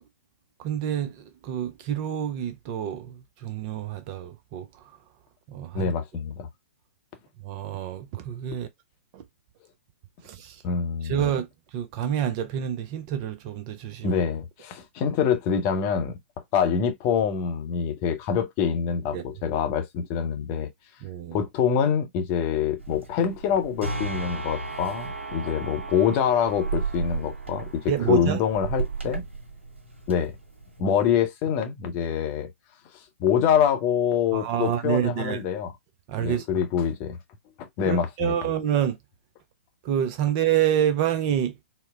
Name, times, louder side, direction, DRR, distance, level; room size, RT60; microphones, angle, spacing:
voice 1, 0.6-1.1 1.4-3.1 3.4-4.7 5.5-5.8 7.5-8.7 9.1-9.2 10.4-10.5 11.1-11.5 11.7-14.1 19.1-19.2 21.0-21.4 27.9-28.4 34.3-35.4 36.1-36.4 37.9-39.0 39.9-41.5, right 10 dB, 30° right, 0.4 m, -27 dB
voice 2, 5.7-6.5 10.6-11.3 14.0-16.2 16.5-20.7 21.3-27.7 28.1-29.2 30.1-30.3 30.8-32.5 33.2-35.7 36.2-37.2 37.8-38.4, left 7 dB, 30° left, 0.7 m, -25 dB
sound 1, 22.8-30.8, right 4 dB, 70° right, 1.3 m, -34 dB
4.1 x 2.0 x 2.3 m
figure-of-eight pair, 115°, 7 cm